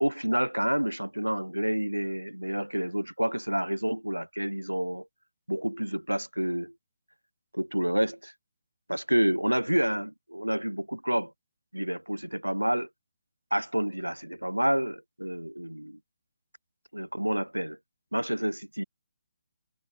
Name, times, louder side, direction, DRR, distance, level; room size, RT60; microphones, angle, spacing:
voice 1, 0.0-5.1 5.5-6.7 7.5-8.3 8.9-11.3 11.7-12.9 13.5-16.0 16.9-17.8 18.1-18.8, right 1 dB, 90° right, 0.4 m, -29 dB
figure-of-eight pair, 140°, 0 cm